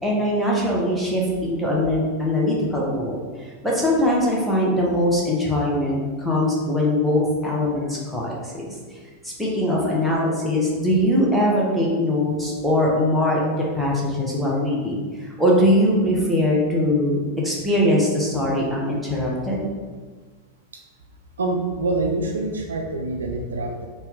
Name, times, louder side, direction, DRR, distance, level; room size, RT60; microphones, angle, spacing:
voice 1, 0.0-3.2 3.6-8.7 9.2-13.4 13.7-17.2 17.4-19.6, left 1 dB, ahead, -5 dB, 1.2 m, -21 dB
voice 2, 21.4-23.9, right 2 dB, 70° right, 3 dB, 0.4 m, -25 dB
4.4 x 2.7 x 3.7 m, 1.4 s
figure-of-eight pair, 90°, 0 cm